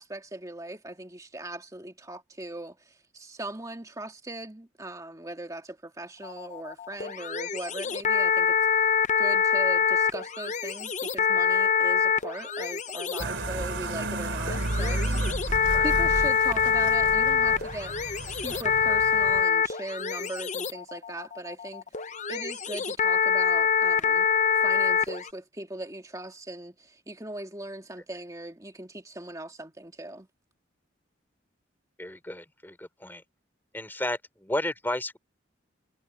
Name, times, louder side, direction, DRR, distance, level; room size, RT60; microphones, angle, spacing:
voice 1, 0.0-8.9 9.2-15.4 15.8-24.3 24.6-30.3, right 1 dB, 15° right, 2.0 m, -39 dB
sound 1, 6.2-25.3, left 6 dB, 40° left, 0.8 m, -25 dB
sound 2, 13.2-19.4, right 1 dB, 75° right, 3.2 m, -32 dB
voice 2, 32.0-33.2 33.7-35.2, left 1 dB, 10° left, 3.2 m, -33 dB
head